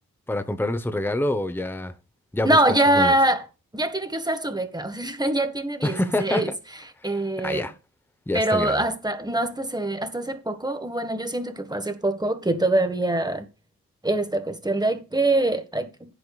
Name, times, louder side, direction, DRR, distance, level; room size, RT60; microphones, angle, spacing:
voice 1, 0.3-1.9 2.3-3.1 5.8-6.6 7.4-7.7 8.3-8.8, left 1 dB, 5° left, 1.0 m, -26 dB
voice 2, 2.4-3.4 3.7-6.5 7.0-7.7 8.3-13.5 14.0-16.1, right 1 dB, 10° right, 1.6 m, -24 dB
16.0 x 7.9 x 2.4 m
wide cardioid pair, 115°, 35 cm